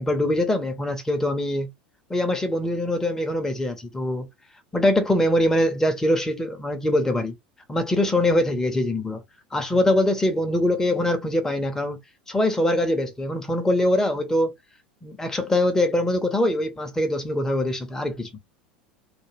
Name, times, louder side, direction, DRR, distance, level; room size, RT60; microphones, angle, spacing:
voice 1, 0.0-1.7 2.1-4.3 4.7-7.3 7.7-9.2 9.5-12.0 12.3-14.5 15.0-18.4, left 1 dB, 10° left, 0.7 m, -23 dB
2.3 x 2.2 x 3.2 m
figure-of-eight pair, 75°, 5 cm